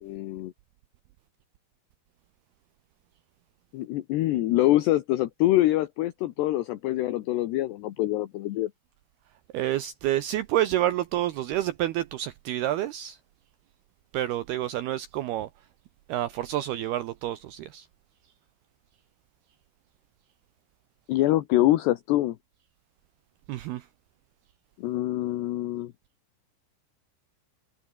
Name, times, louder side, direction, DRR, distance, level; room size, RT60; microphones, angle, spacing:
voice 1, 0.0-0.5 3.7-8.7 21.1-22.4 24.8-25.9, left 15 dB, 70° left, 2.8 m, -25 dB
voice 2, 9.5-13.2 14.1-15.5 16.1-17.9 23.5-23.8, right 13 dB, 85° right, 2.2 m, -28 dB
omnidirectional pair, 5.9 m